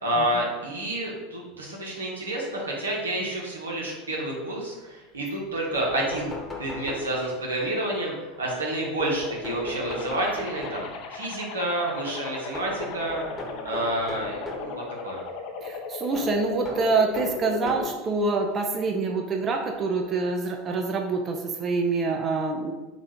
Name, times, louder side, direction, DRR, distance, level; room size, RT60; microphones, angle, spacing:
voice 1, 0.0-6.3 6.6-13.2 13.6-15.2, right 1 dB, 85° right, -3 dB, 1.0 m, -29 dB
sound 1, 5.4-5.5 5.7-7.5 9.0-11.1 12.5-14.8 16.1-18.0 18.9-19.0 20.3-20.4 20.7-20.8, left 1 dB, 10° left, 1.0 m, -38 dB
sound 2, 9.9-17.9, left 5 dB, 55° left, 0.6 m, -37 dB
voice 2, 15.6-22.7, right 3 dB, 35° right, 2 dB, 0.5 m, -26 dB
4.1 x 2.5 x 4.4 m, 1.2 s
hypercardioid pair, 85°, 0 cm